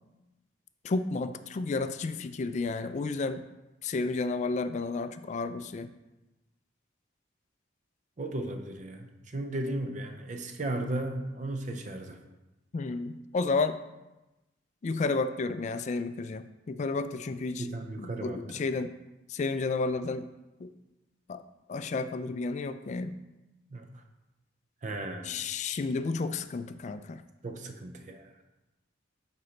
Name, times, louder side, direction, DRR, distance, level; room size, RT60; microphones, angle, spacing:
voice 1, 0.8-3.4 3.8-5.9 12.7-13.8 14.8-17.7 18.0-18.9 19.3-20.3 20.6-20.7 21.3-21.4 21.7-23.2 25.2-27.2, left 3 dB, 35° left, 11 dB, 0.3 m, -31 dB
voice 2, 8.2-12.2 17.6-18.4 23.7-24.0 24.8-25.4 27.4-28.3, right 1 dB, 40° right, 5 dB, 0.5 m, -35 dB
9.5 x 4.0 x 3.2 m, 1.0 s
head